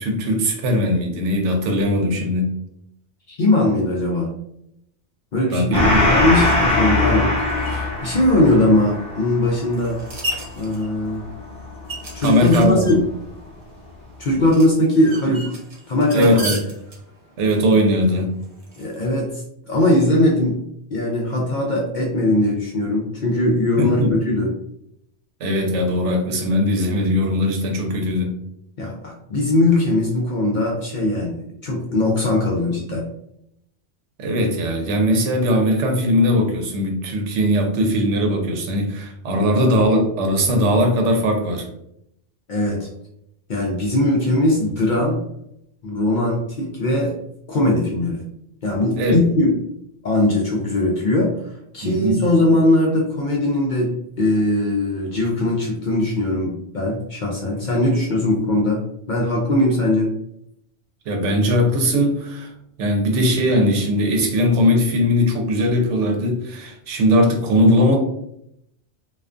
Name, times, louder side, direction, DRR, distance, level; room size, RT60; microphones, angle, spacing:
voice 1, 0.0-2.5 5.5-6.1 12.2-13.0 16.1-16.6 17.4-18.3 23.8-24.1 25.4-28.3 34.2-41.7 49.0-49.2 51.8-52.2 61.1-62.5 62.8-68.0, equal, 80° right, 3 dB, 0.9 m, -19 dB
voice 2, 3.3-4.3 5.3-10.0 10.6-11.2 12.1-13.0 14.2-15.5 15.9-16.4 18.8-20.6 20.9-24.5 28.8-33.0 42.5-42.9 43.5-45.2 45.8-47.2 47.5-48.2 48.6-49.5 50.0-60.1, left 1 dB, 60° left, -2 dB, 0.5 m, -20 dB
Gong, 5.7-12.7, left 2 dB, 5° left, 0.6 m, -22 dB
sound 1, 7.2-19.0, right 1 dB, 45° right, 0.5 m, -36 dB
2.4 x 2.3 x 2.4 m, 0.76 s
omnidirectional pair, 1.2 m